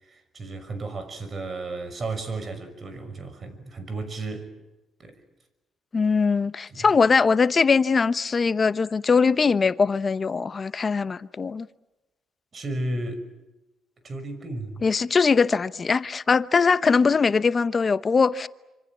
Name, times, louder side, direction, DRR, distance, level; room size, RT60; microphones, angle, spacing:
voice 1, 0.0-4.5 5.0-5.2 6.7-6.9 12.5-13.2 14.0-14.9, right 2 dB, 40° right, 6.0 m, -33 dB
voice 2, 5.9-11.7 14.8-18.5, left 5 dB, 35° left, 0.9 m, -21 dB
27.0 x 26.5 x 7.4 m
cardioid pair, 90°, 0 cm